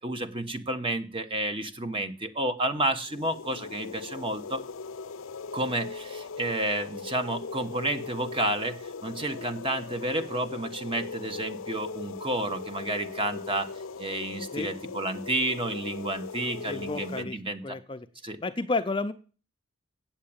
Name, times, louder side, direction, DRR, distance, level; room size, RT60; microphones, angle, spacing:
voice 1, 0.0-4.6 5.5-13.7 14.0-17.8 18.2-18.4, right 1 dB, 25° right, 9 dB, 1.1 m, -31 dB
sound 1, 3.1-17.2, left 4 dB, 70° left, 0.6 m, -39 dB
voice 2, 16.7-17.4 17.6-18.1 18.4-19.1, left 3 dB, 25° left, 9 dB, 0.5 m, -31 dB
8.8 x 7.4 x 8.7 m, 0.36 s
head